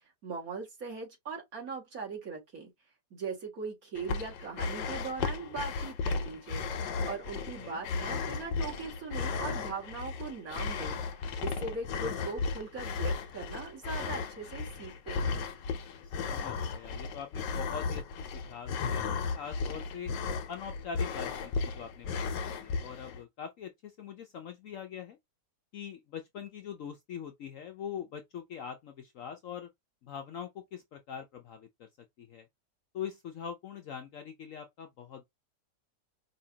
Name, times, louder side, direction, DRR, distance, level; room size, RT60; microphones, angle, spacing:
voice 1, 0.2-2.7 3.1-11.0 11.4-15.5, right 4 dB, 55° right, 2.3 m, -40 dB
sound 1, 4.0-23.2, left 4 dB, 85° left, 1.4 m, -35 dB
voice 2, 7.4-7.8 16.0-20.1 20.5-25.2 25.7-29.7 30.0-31.9 32.2-32.5 32.9-35.2, left 8 dB, 65° left, 0.8 m, -43 dB
5.4 x 2.8 x 2.7 m
omnidirectional pair, 1.8 m